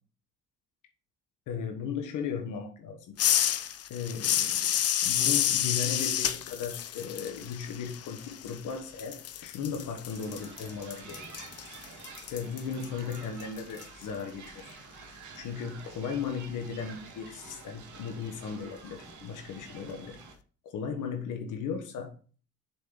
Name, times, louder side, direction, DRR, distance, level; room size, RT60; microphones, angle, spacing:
voice 1, 1.5-3.1 3.9-4.8 5.0-11.3 12.3-14.8 15.3-20.2 20.6-22.1, left 6 dB, 85° left, 1.4 m, -36 dB
sound 1, 3.2-8.7 9.0-13.8, left 10 dB, 55° left, 0.6 m, -30 dB
sound 2, 10.1-20.3, right 5 dB, 75° right, 2.1 m, -49 dB
6.7 x 5.0 x 3.9 m
cardioid pair, 90°, 30 cm